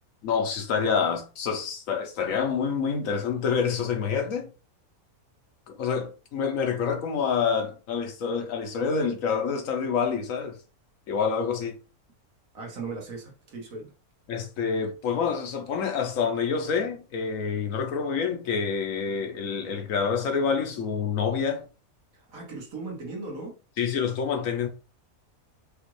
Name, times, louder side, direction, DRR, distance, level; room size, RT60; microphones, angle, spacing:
voice 1, 0.2-4.5 5.7-10.6 11.1-11.8 14.3-21.7 23.8-24.7, left 6 dB, 65° left, 1.1 m, -27 dB
voice 2, 12.5-13.9 22.1-23.6, right 3 dB, 65° right, 1.6 m, -38 dB
5.0 x 2.4 x 3.1 m
omnidirectional pair, 1.5 m